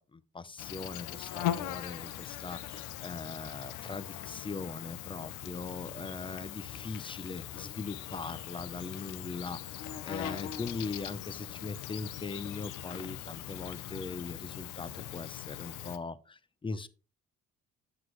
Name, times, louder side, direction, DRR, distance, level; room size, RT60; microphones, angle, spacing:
voice 1, 0.0-16.9, left 4 dB, 15° left, 17 dB, 0.6 m, -40 dB
Insect, 0.6-16.0, left 12 dB, 85° left, 0.7 m, -40 dB
8.2 x 7.7 x 3.1 m, 0.35 s
cardioid pair, 90°, 30 cm